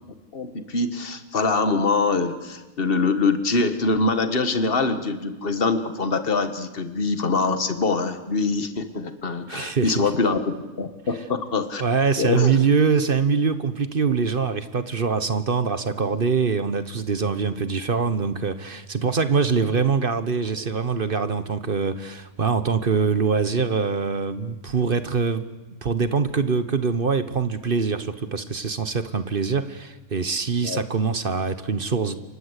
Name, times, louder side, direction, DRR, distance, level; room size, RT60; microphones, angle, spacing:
voice 1, 0.3-11.8 12.2-12.6 30.6-30.8, left 3 dB, 40° left, 10 dB, 1.7 m, -24 dB
voice 2, 9.5-10.0 11.8-25.5 25.8-32.2, right 5 dB, 40° right, 12 dB, 1.1 m, -23 dB
28.5 x 23.5 x 8.2 m, 1.2 s
omnidirectional pair, 1.5 m